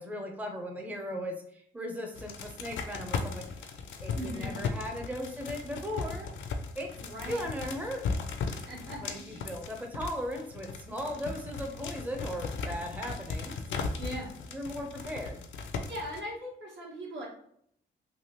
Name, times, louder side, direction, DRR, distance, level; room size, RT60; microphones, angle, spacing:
voice 1, 0.0-6.3 6.8-6.9 7.3-8.1 9.0-13.6 14.5-15.4, equal, 10° right, 3 dB, 0.5 m, -37 dB
sound 1, 2.1-16.2, left 4 dB, 75° left, 0.5 m, -37 dB
voice 2, 4.1-4.6 7.0-7.4 8.7-9.5 14.0-14.3 15.9-17.3, equal, 70° right, -3 dB, 1.4 m, -40 dB
3.3 x 2.5 x 2.9 m, 0.68 s
cardioid pair, 75°, 20 cm